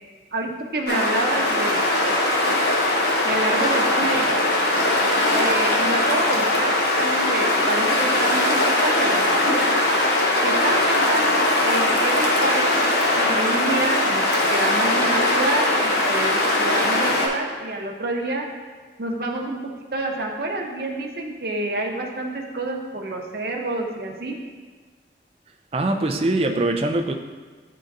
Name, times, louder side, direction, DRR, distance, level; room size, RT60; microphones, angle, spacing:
voice 1, 0.3-2.0 3.2-4.3 5.3-9.7 10.4-14.2 14.5-18.4 19.0-19.6 19.9-24.4, right 2 dB, 55° right, 0 dB, 0.8 m, -28 dB
sound 1, 0.9-17.3, left 1 dB, 65° left, 0.8 m, -20 dB
voice 2, 25.7-27.1, right 2 dB, 35° right, 5 dB, 0.4 m, -22 dB
10.0 x 3.7 x 2.6 m, 1.4 s
head